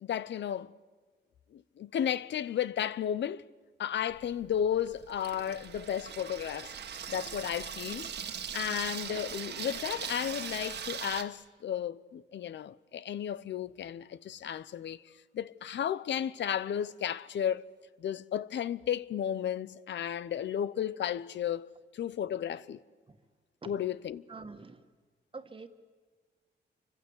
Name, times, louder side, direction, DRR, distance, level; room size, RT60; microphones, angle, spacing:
voice 1, 0.0-0.7 1.5-3.4 3.8-6.7 7.1-15.0 15.3-17.7 18.0-22.8 23.7-24.2, left 9 dB, 80° left, 0.8 m, -33 dB
Water tap faucet / Sink (filling or washing), 4.1-11.2, right 7 dB, 70° right, 1.6 m, -40 dB
voice 2, 23.6-24.0 24.3-24.9 25.3-25.7, right 4 dB, 30° right, 1.7 m, -46 dB
28.0 x 25.0 x 8.2 m
wide cardioid pair, 130°, 18 cm